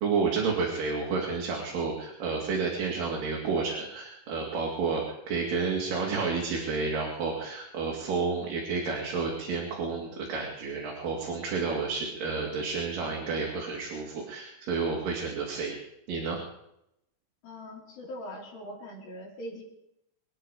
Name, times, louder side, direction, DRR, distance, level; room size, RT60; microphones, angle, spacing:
voice 1, 0.0-15.8 16.1-16.4, right 4 dB, 70° right, -2 dB, 4.3 m, -30 dB
voice 2, 17.4-19.6, equal, 90° left, -5 dB, 5.4 m, -41 dB
24.5 x 10.5 x 4.9 m, 0.79 s
omnidirectional pair, 4.0 m